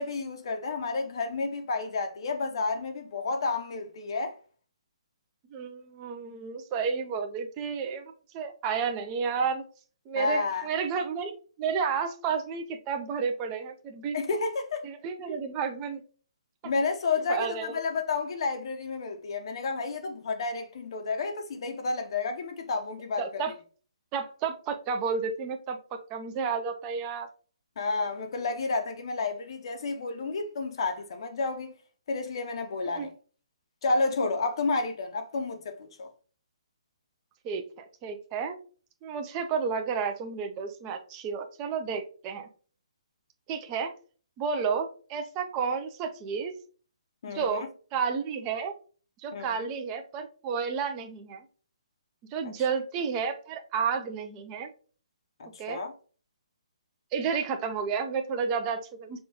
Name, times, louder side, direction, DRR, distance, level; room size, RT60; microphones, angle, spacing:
voice 1, 0.0-4.3 10.2-10.7 14.1-14.9 16.6-23.4 27.8-31.7 32.1-33.1 33.8-36.1 47.2-47.7 49.3-49.7 55.4-55.9, left 3 dB, 55° left, 0.6 m, -31 dB
voice 2, 5.5-9.6 10.1-11.3 11.6-14.2 14.8-16.0 17.3-17.8 23.2-23.5 24.1-25.8 26.1-27.3 33.0-33.1 37.4-38.6 39.0-42.5 43.5-43.9 44.4-46.6 47.3-47.6 47.9-48.7 49.2-51.4 52.3-54.7 55.6-55.8 57.1-59.2, right 6 dB, 20° right, 0.4 m, -31 dB
5.4 x 2.2 x 2.8 m
hypercardioid pair, 160°, 3 cm